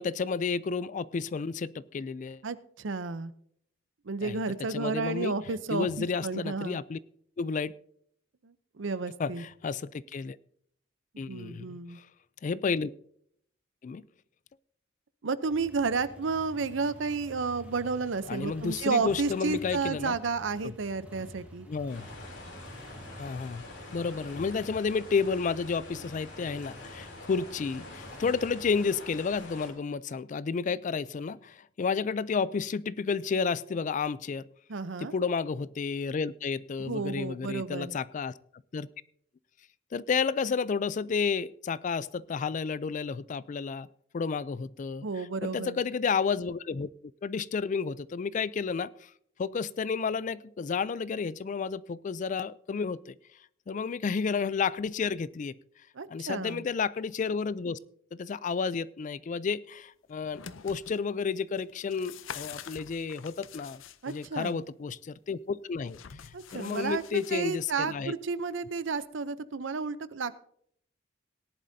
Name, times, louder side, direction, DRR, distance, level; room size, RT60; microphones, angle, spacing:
voice 1, 0.0-2.4 4.2-4.4 4.7-5.3 5.7-7.0 7.4-7.7 9.2-10.4 11.2-12.1 12.4-12.9 13.8-14.0 18.3-20.2 20.6-20.7 21.7-22.1 23.2-23.6 23.9-34.4 35.0-38.3 38.7-38.9 39.9-43.9 44.1-46.9 47.2-48.9 49.4-53.2 53.7-55.5 56.1-57.8 58.1-66.0 66.5-68.1, left 5 dB, 40° left, 19 dB, 0.3 m, -31 dB
voice 2, 2.4-3.3 4.1-6.8 8.4-9.4 11.3-12.0 15.2-21.7 34.7-35.1 36.8-38.0 45.0-45.8 56.0-56.6 64.0-64.6 66.3-70.3, right 4 dB, 70° right, 15 dB, 0.6 m, -32 dB
sound 1, 15.5-28.8, equal, 5° right, 2.2 m, -49 dB
sound 2, 21.9-29.7, left 2 dB, 65° left, 3.2 m, -46 dB
sound 3, 60.1-61.0 61.6-64.5 65.9-67.6 69.0-69.1, left 8 dB, 85° left, 0.6 m, -46 dB
18.0 x 11.0 x 2.7 m, 0.67 s
head